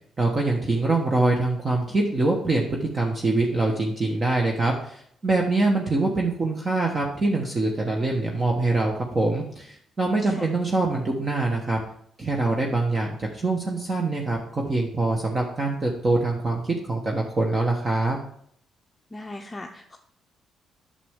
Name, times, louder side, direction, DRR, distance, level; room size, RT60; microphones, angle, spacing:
voice 1, 0.2-11.8 12.2-18.2, right 2 dB, 30° right, 0 dB, 1.3 m, -24 dB
voice 2, 19.1-20.0, left 1 dB, 20° left, 2 dB, 0.7 m, -39 dB
8.5 x 6.8 x 3.7 m, 0.66 s
cardioid pair, 90°, 0 cm